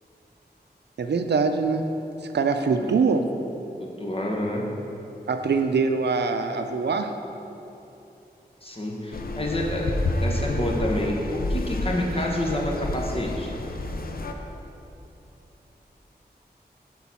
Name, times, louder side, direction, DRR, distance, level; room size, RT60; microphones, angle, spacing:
voice 1, 1.0-1.9 2.3-3.3 5.3-7.1, right 4 dB, 90° right, 7 dB, 0.4 m, -23 dB
voice 2, 3.8-4.6 8.6-13.5, left 1 dB, 35° left, -1 dB, 1.2 m, -28 dB
sound 1, 9.1-14.3, left 2 dB, 60° left, 0.6 m, -29 dB
8.3 x 3.9 x 6.0 m, 2.9 s
wide cardioid pair, 65°, 17 cm